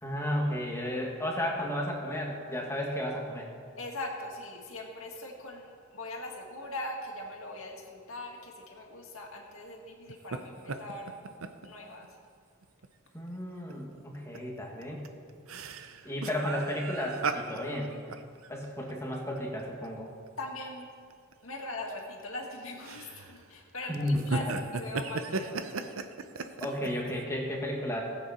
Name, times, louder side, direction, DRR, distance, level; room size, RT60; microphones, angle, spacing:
voice 1, 0.0-3.5 13.1-15.0 16.0-17.9 18.5-20.1 23.9-24.5 26.6-28.0, left 1 dB, 15° left, -1 dB, 1.9 m, -33 dB
voice 2, 3.8-11.1 11.6-12.2 20.4-20.9 21.4-24.4 24.7-25.7, left 2 dB, 75° left, 0 dB, 2.1 m, -41 dB
sound 1, 10.1-10.4 10.7-11.7 12.0-12.1 12.6-12.9 13.7-13.8 14.1-14.4 14.8-19.9 20.3-20.4 21.1-21.3 22.0-22.4 22.8-23.4 23.9-27.1, right 4 dB, 75° right, 0.7 m, -36 dB
18.5 x 8.1 x 4.3 m, 2.1 s
head